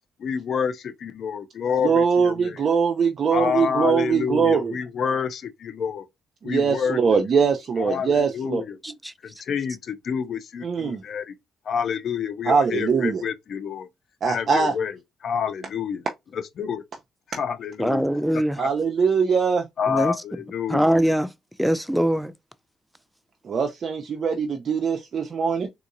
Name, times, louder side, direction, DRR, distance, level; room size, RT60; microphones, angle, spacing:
voice 1, 0.2-2.6 3.3-6.0 6.4-7.0 7.8-8.8 9.2-11.3 11.7-13.9 14.3-16.1 16.3-16.8 17.4-18.7 19.8-20.9, left 7 dB, 60° left, 0.6 m, -28 dB
voice 2, 1.8-4.7 6.4-8.6 10.6-11.0 12.5-13.2 14.2-14.7 18.6-19.6 23.4-25.7, right 5 dB, 50° right, 0.5 m, -22 dB
voice 3, 17.8-18.6 19.9-20.1 20.7-21.3 21.6-22.3, equal, ahead, 0.4 m, -22 dB
3.6 x 2.8 x 2.5 m
cardioid pair, 90°, 0 cm